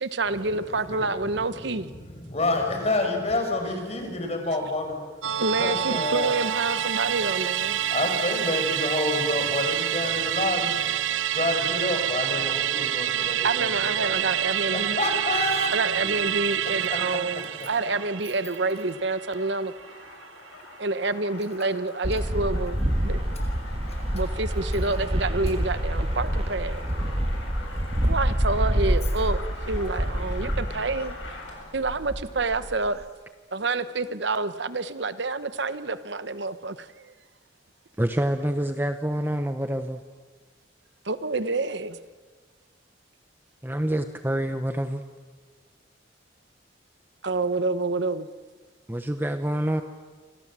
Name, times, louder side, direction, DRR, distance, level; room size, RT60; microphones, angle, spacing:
voice 1, 0.0-1.9 5.4-7.8 13.4-15.0 15.7-19.7 20.8-23.2 24.1-26.8 28.0-31.1 31.7-33.0 33.5-37.1 41.0-42.0 47.2-48.3, right 3 dB, 65° right, 1.0 m, -28 dB
voice 2, 0.9-1.4 1.7-5.0 5.4-6.3 7.9-10.7 11.3-14.2 14.6-16.1 16.9-17.0 17.6-17.7 29.7-30.2 30.6-30.9 33.5-33.6, left 2 dB, 35° left, 5.5 m, -29 dB
Musical instrument, 5.2-19.9 20.2-20.3, right 11 dB, 85° right, 0.7 m, -27 dB
sound 1, 15.5-31.8, left 3 dB, 85° left, 7.4 m, -44 dB
sound 2, 22.0-31.4 31.7-33.0, equal, 30° right, 1.8 m, -27 dB
voice 3, 38.0-40.0 43.6-45.0 48.9-49.8, right 1 dB, 10° right, 0.9 m, -27 dB
28.5 x 25.5 x 7.5 m
head